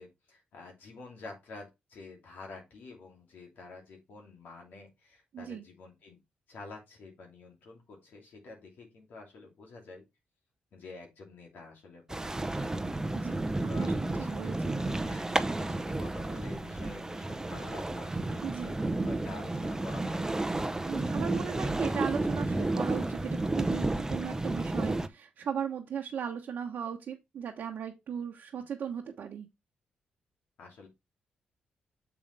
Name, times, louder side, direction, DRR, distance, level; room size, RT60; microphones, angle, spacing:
voice 1, 0.0-6.2 6.5-10.0 10.7-12.2 12.5-12.9 13.7-14.5 15.0-20.4 21.3-21.5 28.5-28.6 30.6-30.9, left 3 dB, 75° left, 2.8 m, -49 dB
voice 2, 5.3-5.6 13.1-13.4 13.8-14.8 18.4-18.8 20.8-29.5, right 8 dB, 70° right, 1.1 m, -37 dB
sound 1, 12.1-25.1, right 2 dB, 15° right, 0.8 m, -32 dB
6.9 x 5.2 x 3.4 m
supercardioid pair, 55°, 3 cm